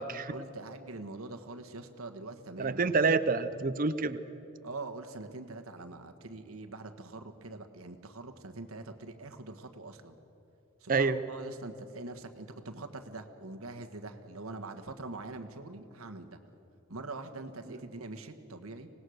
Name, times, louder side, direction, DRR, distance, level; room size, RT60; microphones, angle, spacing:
voice 1, 0.0-2.9 4.6-10.1 10.8-16.4 16.9-18.9, right 2 dB, 85° right, 6 dB, 1.4 m, -43 dB
voice 2, 2.6-4.2 10.9-11.2, right 4 dB, 40° right, 13 dB, 0.7 m, -27 dB
25.0 x 18.5 x 6.5 m, 3.0 s
head